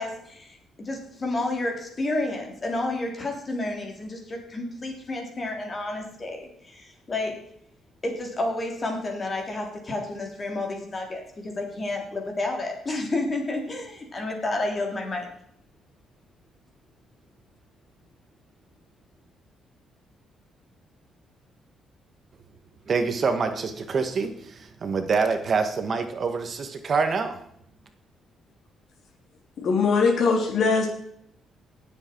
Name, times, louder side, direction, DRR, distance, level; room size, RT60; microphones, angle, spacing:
voice 1, 0.0-7.5 8.0-15.3, left 2 dB, 30° left, 3.5 m, -30 dB
voice 2, 22.9-27.4, right 5 dB, 40° right, 1.4 m, -26 dB
voice 3, 29.6-30.9, left 4 dB, 55° left, 3.0 m, -21 dB
19.0 x 7.7 x 4.6 m
cardioid pair, 135°, 0 cm